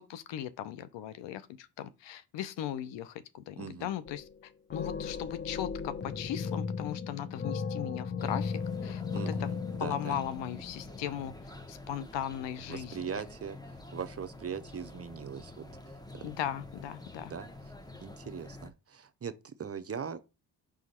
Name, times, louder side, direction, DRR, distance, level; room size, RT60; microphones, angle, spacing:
voice 1, 0.0-9.5 9.8-11.3 11.7-13.0 16.2-17.3, left 10 dB, 85° left, 0.7 m, -38 dB
voice 2, 3.6-3.9 9.1-10.2 12.7-13.6 13.9-15.7 16.1-16.3 17.3-17.5 18.0-20.2, right 7 dB, 35° right, 0.6 m, -40 dB
sound 1, 4.1-4.4 4.7-11.4, left 5 dB, 25° left, 0.6 m, -36 dB
sound 2, 8.2-18.7, left 2 dB, 10° left, 1.0 m, -48 dB
5.1 x 4.8 x 4.3 m
cardioid pair, 65°, 43 cm